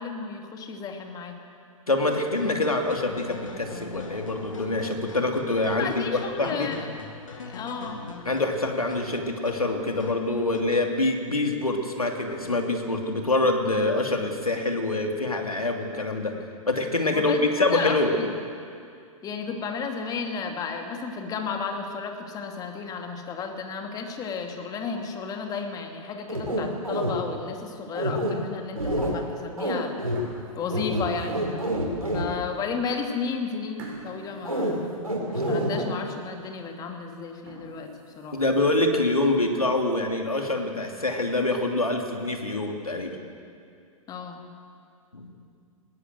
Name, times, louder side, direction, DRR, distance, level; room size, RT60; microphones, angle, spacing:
voice 1, 0.0-1.3 5.8-6.9 7.4-8.0 17.1-18.3 19.2-29.9 30.5-31.6 32.1-38.4 44.1-44.4, left 5 dB, 20° left, 3 dB, 2.4 m, -33 dB
voice 2, 1.9-6.7 8.2-16.3 16.7-18.1 38.3-43.2 45.1-45.3, left 2 dB, 80° left, 3 dB, 2.9 m, -25 dB
sound 1, 2.1-10.8, left 3 dB, 65° left, 2.9 m, -42 dB
sound 2, 26.3-27.1 27.9-28.3 28.8-29.1 29.6-29.7 30.0-30.2 30.7-32.3 34.4-34.7 35.0-35.8, right 1 dB, 85° right, 5.0 m, -27 dB
sound 3, 27.3-27.9 28.4-28.6 29.4-29.7 29.9-31.8 32.4-32.5 32.9-33.0 33.8-35.5 36.0-36.1 36.5-36.6 37.3-38.9 39.3-39.4 39.8-39.9 40.3-40.4 40.7-40.8 41.7-42.3, right 2 dB, 45° right, 6.4 m, -47 dB
20.5 x 17.5 x 8.0 m, 2.3 s
figure-of-eight pair, 110°, 18 cm